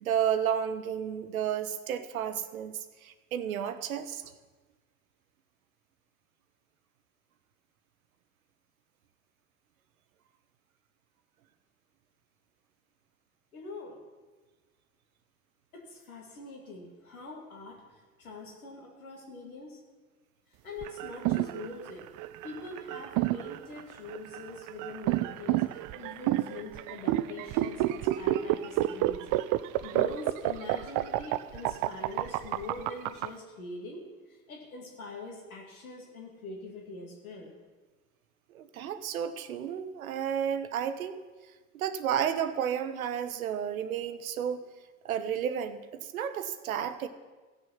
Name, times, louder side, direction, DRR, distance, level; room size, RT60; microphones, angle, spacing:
voice 1, 0.0-4.2 38.5-41.2 41.7-44.6 45.0-47.1, right 9 dB, 80° right, 12 dB, 0.8 m, -32 dB
voice 2, 13.5-14.0 15.7-19.8 20.6-22.1 22.4-29.3 29.8-37.5, left 2 dB, 80° left, -1 dB, 2.4 m, -44 dB
sound 1, 20.8-33.3, right 15 dB, 50° right, 0.6 m, -29 dB
16.0 x 6.6 x 5.7 m, 1.3 s
figure-of-eight pair, 65°, 42 cm